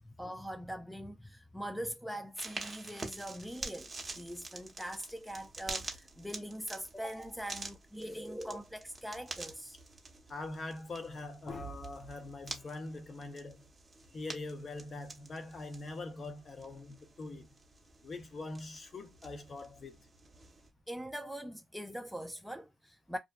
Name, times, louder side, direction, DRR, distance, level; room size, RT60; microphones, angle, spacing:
voice 1, 0.0-9.8 20.9-23.2, equal, ahead, 0.3 m, -42 dB
sound 1, 2.3-20.7, right 3 dB, 25° right, 0.8 m, -48 dB
voice 2, 10.3-13.7 14.1-17.5 18.0-20.0, left 2 dB, 40° left, 0.7 m, -43 dB
2.4 x 2.2 x 2.3 m
cardioid pair, 90°, 0 cm